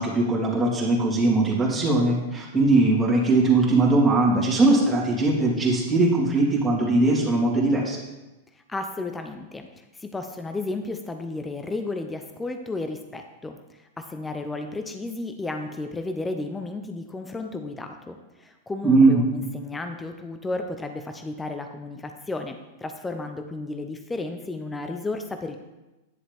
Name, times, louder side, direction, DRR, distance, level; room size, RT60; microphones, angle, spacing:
voice 1, 0.0-8.0 18.8-19.3, right 2 dB, 15° right, -6 dB, 3.0 m, -20 dB
voice 2, 8.7-25.6, left 2 dB, 10° left, 6 dB, 0.7 m, -33 dB
10.5 x 7.0 x 3.6 m, 1.0 s
hypercardioid pair, 115°, 0 cm